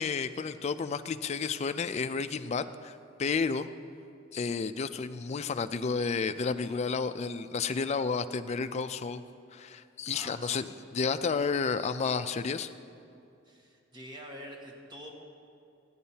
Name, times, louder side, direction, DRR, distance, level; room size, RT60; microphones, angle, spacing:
voice 1, 0.0-3.7 4.3-9.2 9.5-10.6 10.9-12.7, left 5 dB, 35° left, 10 dB, 0.3 m, -31 dB
voice 2, 10.1-10.9 13.4-15.1, equal, 20° right, 0 dB, 1.2 m, -46 dB
16.5 x 10.0 x 2.8 m, 2.6 s
head